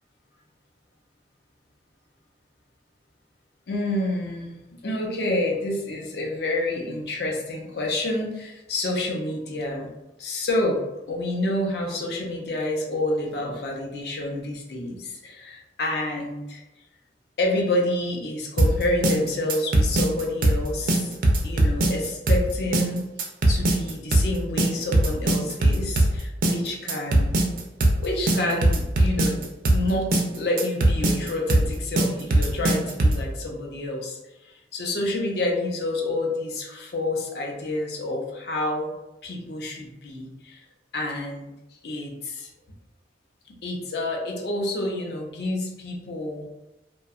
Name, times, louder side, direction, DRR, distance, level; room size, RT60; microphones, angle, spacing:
voice 1, 3.7-9.9 10.2-10.8 11.1-16.6 17.4-21.1 21.4-23.1 23.5-27.3 28.0-29.4 29.7-38.9 39.2-40.6 40.9-41.5 41.8-42.5 43.6-46.5, left 1 dB, 60° left, 0 dB, 0.5 m, -28 dB
sound 1, 18.6-33.3, right 1 dB, 50° right, 0.3 m, -21 dB
2.7 x 2.1 x 2.4 m, 0.99 s
head